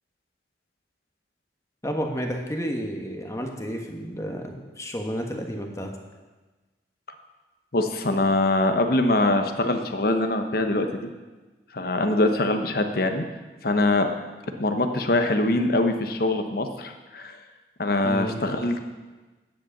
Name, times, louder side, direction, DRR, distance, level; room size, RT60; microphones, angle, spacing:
voice 1, 1.8-5.9 18.0-18.4, equal, 15° left, 3 dB, 1.2 m, -31 dB
voice 2, 7.7-11.1 11.7-13.2 13.6-14.1 14.6-17.4 17.8-18.8, left 2 dB, 55° left, 6 dB, 1.0 m, -23 dB
9.6 x 7.8 x 7.2 m, 1.2 s
head